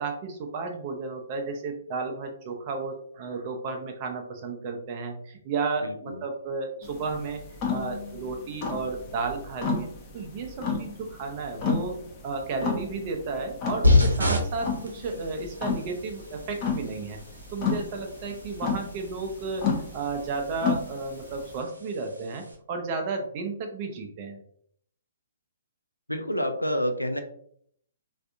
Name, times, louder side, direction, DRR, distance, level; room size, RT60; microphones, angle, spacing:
voice 1, 0.0-7.4 7.7-12.0 12.2-17.2 17.5-24.4, right 4 dB, 35° right, 3 dB, 0.5 m, -33 dB
voice 2, 5.8-6.2 26.1-27.2, equal, 90° left, 7 dB, 0.4 m, -28 dB
sound 1, 6.8-21.6, left 5 dB, 25° left, 0.6 m, -33 dB
sound 2, 13.8-22.5, left 2 dB, 80° right, 0.7 m, -29 dB
3.3 x 2.5 x 2.3 m, 0.64 s
figure-of-eight pair, 125°, 0 cm